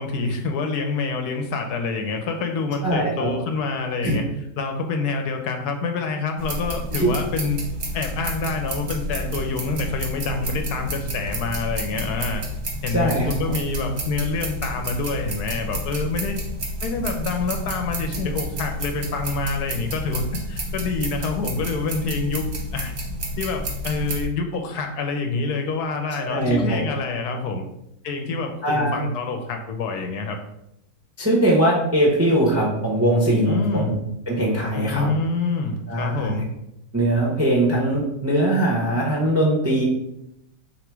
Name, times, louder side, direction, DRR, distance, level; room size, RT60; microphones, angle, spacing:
voice 1, 0.0-4.2 4.6-7.6 7.9-12.4 12.8-16.4 16.8-20.2 20.5-22.4 22.7-22.9 23.4-27.7 28.0-30.4 33.5-33.9 34.7-36.5, left 4 dB, 75° left, 5 dB, 1.1 m, -27 dB
voice 2, 2.8-3.3 4.0-4.1 6.9-7.1 12.9-13.3 26.2-26.8 28.6-29.1 31.2-34.0 34.3-35.1 35.9-36.4 36.9-39.8, right 1 dB, 15° right, -3 dB, 0.5 m, -21 dB
sound 1, 6.4-24.3, equal, 50° right, 0.9 m, -30 dB
3.7 x 3.0 x 4.6 m, 0.82 s
omnidirectional pair, 1.8 m